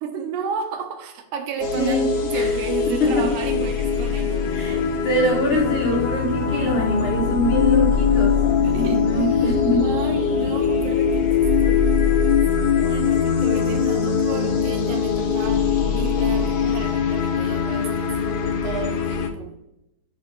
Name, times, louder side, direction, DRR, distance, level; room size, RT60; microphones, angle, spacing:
voice 1, 0.0-4.4 5.9-6.0 8.6-9.6 9.8-15.7 16.0-19.6, right 7 dB, 85° right, 5 dB, 2.2 m, -33 dB
sound 1, 1.6-19.3, left 6 dB, 85° left, 1.3 m, -21 dB
voice 2, 1.7-2.5 2.9-3.3 4.5-8.4 8.7-9.9, left 1 dB, 65° left, -2 dB, 1.5 m, -24 dB
sound 2, 3.0-9.1, left 3 dB, 30° left, 1.5 m, -38 dB
sound 3, 4.2-16.8, left 5 dB, 45° left, 2.4 m, -38 dB
9.7 x 5.0 x 2.5 m, 0.85 s
omnidirectional pair, 3.5 m